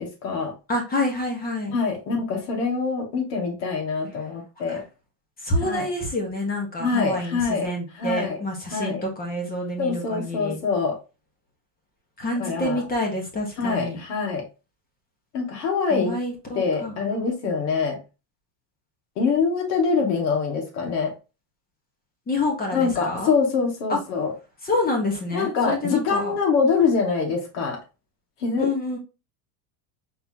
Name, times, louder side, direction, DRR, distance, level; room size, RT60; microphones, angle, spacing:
voice 1, 0.0-0.5 1.7-4.8 5.6-5.9 6.8-7.7 8.0-8.4 8.7-9.0 9.8-11.0 12.4-12.8 13.6-14.4 15.3-16.2 16.5-18.0 19.2-21.1 22.7-24.3 25.3-27.8 28.4-28.7, left 5 dB, 80° left, 1 dB, 2.0 m, -24 dB
voice 2, 0.7-1.7 4.7-4.8 5.4-10.6 12.2-14.0 15.9-16.9 22.3-23.3 23.9-24.0 24.6-26.3 28.6-29.0, left 2 dB, 20° left, 1 dB, 1.1 m, -27 dB
4.4 x 2.9 x 3.6 m, 0.29 s
cardioid pair, 155°, 48 cm